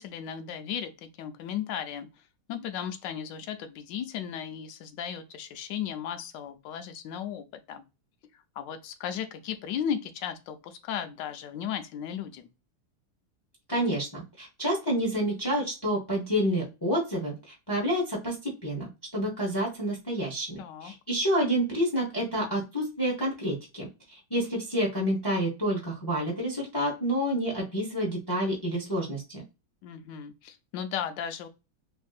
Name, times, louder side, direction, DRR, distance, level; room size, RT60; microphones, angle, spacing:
voice 1, 0.0-2.1 2.5-7.8 8.3-12.5 20.6-20.9 29.8-31.5, left 8 dB, 75° left, 1.2 m, -35 dB
voice 2, 13.7-23.9 24.3-29.4, equal, 35° left, 0.3 m, -29 dB
3.5 x 2.5 x 2.3 m
omnidirectional pair, 2.0 m